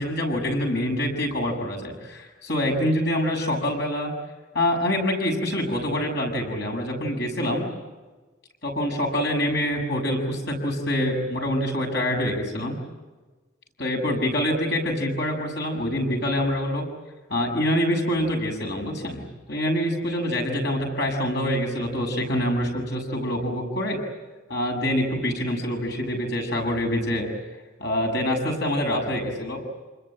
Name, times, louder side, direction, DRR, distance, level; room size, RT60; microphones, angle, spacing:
voice 1, 0.0-4.1 4.5-7.7 8.6-12.8 13.8-16.8 17.3-19.2 19.5-24.0 24.5-27.3 27.8-29.6, left 1 dB, 55° left, 2 dB, 7.3 m, -25 dB
28.5 x 21.0 x 8.9 m, 1.3 s
head